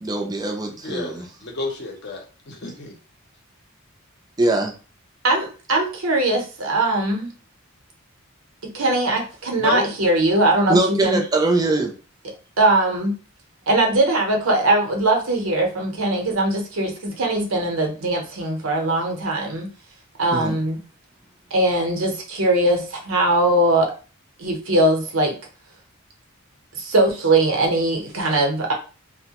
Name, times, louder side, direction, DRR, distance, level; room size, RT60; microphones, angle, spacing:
voice 1, 0.0-1.3 4.4-4.7 10.7-12.0 20.3-20.6, right 2 dB, 20° right, 2 dB, 0.5 m, -22 dB
voice 2, 0.8-3.0 9.6-9.8, left 4 dB, 50° left, 1 dB, 0.7 m, -29 dB
voice 3, 5.2-7.3 8.7-11.2 12.6-13.2 13.7-19.7 20.2-20.8 21.5-23.9 24.4-25.4 26.7-28.7, right 2 dB, 80° right, 1 dB, 0.8 m, -20 dB
2.8 x 2.1 x 2.8 m, 0.35 s
head